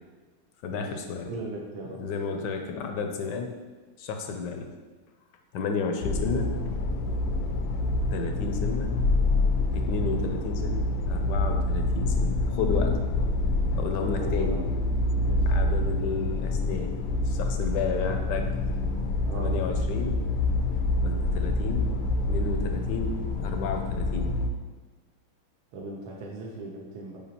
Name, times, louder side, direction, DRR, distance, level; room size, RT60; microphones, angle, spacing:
voice 1, 0.6-1.3 1.9-3.5 4.0-4.7 5.5-6.5 8.1-8.9 9.7-12.9 13.7-14.6 15.5-16.9 17.2-18.5 19.4-20.2 21.0-21.9 22.3-24.3, left 5 dB, 75° left, 5 dB, 1.0 m, -32 dB
voice 2, 1.3-2.0 14.2-14.6 15.2-15.5 19.2-19.5 25.7-27.2, right 2 dB, 75° right, -2 dB, 1.5 m, -38 dB
sound 1, 6.0-24.5, left 2 dB, 90° left, 1.5 m, -27 dB
6.9 x 5.2 x 2.9 m, 1.3 s
omnidirectional pair, 2.3 m